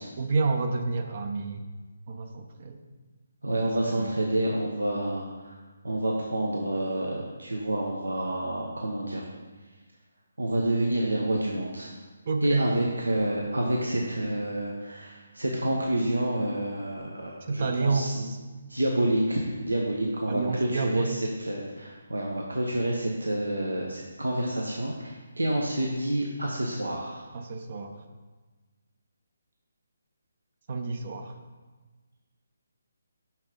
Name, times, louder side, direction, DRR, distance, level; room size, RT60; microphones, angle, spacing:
voice 1, 0.2-1.6 2.1-2.8 3.9-4.2 12.3-12.7 17.5-18.4 20.3-21.2 27.3-27.9 30.7-31.4, right 4 dB, 45° right, 5 dB, 0.7 m, -29 dB
voice 2, 3.4-5.6 5.8-9.2 10.4-11.9 12.4-18.2 18.7-27.2, right 1 dB, 75° right, -1 dB, 1.0 m, -28 dB
6.0 x 5.8 x 5.2 m, 1.3 s
figure-of-eight pair, 145°, 0 cm